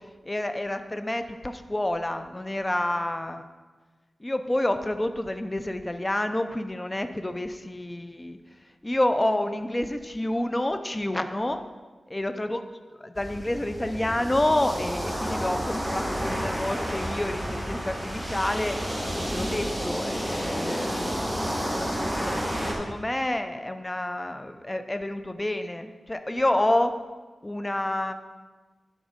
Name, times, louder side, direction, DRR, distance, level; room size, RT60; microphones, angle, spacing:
voice 1, 0.3-3.4 4.2-8.4 8.8-11.6 12.1-12.6 13.2-18.8 19.3-21.1 21.6-22.1 22.6-26.9 27.4-28.1, left 1 dB, 20° left, 8 dB, 0.5 m, -28 dB
sound 1, 13.1-22.7, equal, 5° right, 1.8 m, -30 dB
11.0 x 4.6 x 5.1 m, 1.3 s
wide cardioid pair, 95°, 0 cm